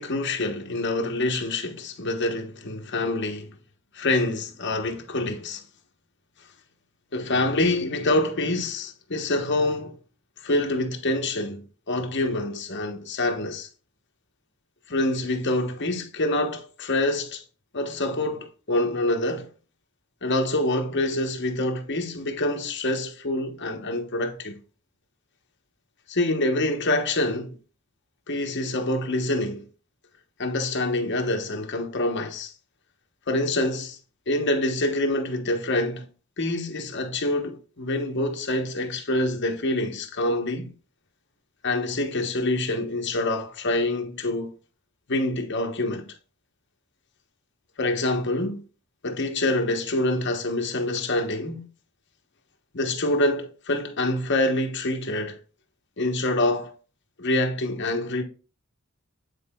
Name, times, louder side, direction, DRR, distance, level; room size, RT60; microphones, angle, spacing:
voice 1, 0.0-3.5 3.9-5.6 7.1-10.0 10.4-13.7 14.9-17.4 17.7-19.5 20.2-24.6 26.1-27.6 28.3-29.6 30.4-32.5 33.3-34.0 34.3-36.1 36.4-40.7 41.6-44.5 45.1-46.1 47.8-48.6 49.0-51.6 52.7-55.4 56.0-56.7 57.2-58.2, left 2 dB, 50° left, 1.0 m, -26 dB
9.4 x 4.4 x 2.3 m
head